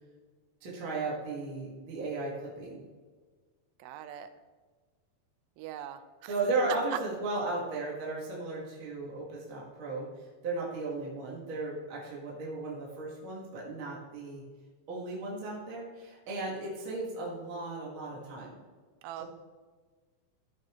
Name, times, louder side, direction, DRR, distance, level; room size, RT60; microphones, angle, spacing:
voice 1, 0.6-2.8 6.3-10.1 10.4-14.4 14.9-18.6 19.2-19.3, right 3 dB, 45° right, -5 dB, 1.7 m, -35 dB
voice 2, 3.8-4.3 5.6-6.4 6.7-7.0 19.0-19.2, right 12 dB, 80° right, 9 dB, 2.2 m, -40 dB
13.5 x 5.8 x 3.0 m, 1.4 s
omnidirectional pair, 4.5 m